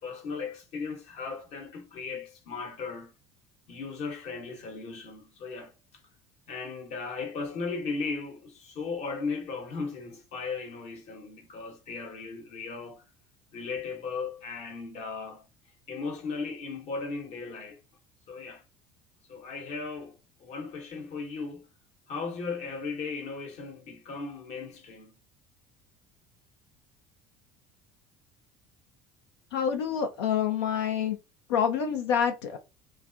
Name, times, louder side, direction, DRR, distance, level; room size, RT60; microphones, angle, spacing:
voice 1, 0.0-3.1 3.7-5.7 6.5-13.0 13.5-15.5 15.9-17.8 18.3-18.6 19.3-21.7 22.1-25.2, left 4 dB, 60° left, 1.1 m, -37 dB
voice 2, 29.5-31.2 31.5-32.6, left 8 dB, 80° left, 0.5 m, -27 dB
3.1 x 2.4 x 2.5 m
hypercardioid pair, 70°, 13 cm